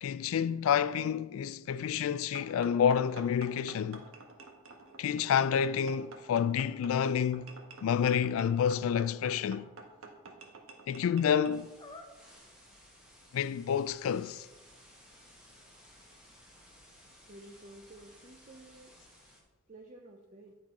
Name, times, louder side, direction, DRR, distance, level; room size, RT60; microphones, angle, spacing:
voice 1, 0.0-4.1 5.0-7.5 7.8-9.7 10.9-11.7 13.3-14.5, left 8 dB, 70° left, 0.3 m, -29 dB
sound 1, 2.3-11.6, right 3 dB, 70° right, 1.1 m, -49 dB
sound 2, 11.5-19.4, equal, 5° right, 1.4 m, -58 dB
sound 3, 11.8-12.5 13.1-13.2 13.6-17.1, left 2 dB, 20° left, 0.6 m, -56 dB
voice 2, 17.3-19.0 19.7-20.6, right 1 dB, 35° right, 0.5 m, -52 dB
10.0 x 4.3 x 4.6 m
head